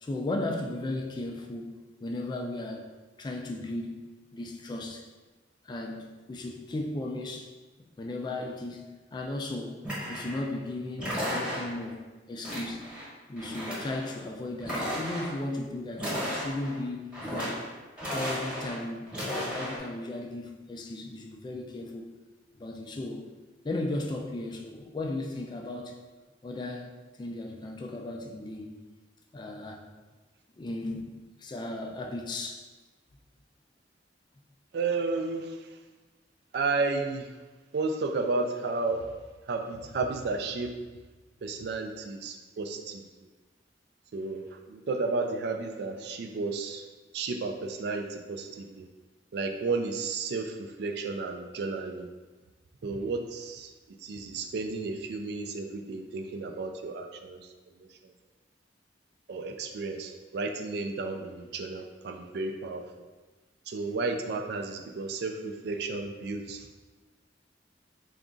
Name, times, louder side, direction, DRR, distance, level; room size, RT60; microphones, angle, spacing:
voice 1, 0.0-2.9 3.2-4.0 4.3-5.1 5.6-7.5 8.0-9.8 10.1-12.9 13.3-17.6 18.1-22.1 22.5-23.3 23.6-26.0 26.4-26.9 27.2-28.8 29.3-29.9 30.6-31.1 31.4-32.7, left 2 dB, 25° left, 3 dB, 0.3 m, -36 dB
sound 1, 9.8-10.5 11.0-11.9 12.4-13.1 13.4-14.1 14.6-15.4 15.9-16.8 17.1-17.7 18.0-18.8 19.1-19.8, equal, 5° right, 1.1 m, -34 dB
voice 2, 34.7-35.8 36.5-37.4 37.7-39.1 39.5-40.7 41.4-43.0 44.1-46.9 47.1-48.9 49.3-52.1 52.8-57.5 57.8-58.1 59.3-62.8 63.7-66.7, right 3 dB, 60° right, 5 dB, 0.3 m, -32 dB
3.9 x 2.4 x 3.7 m, 1.3 s
head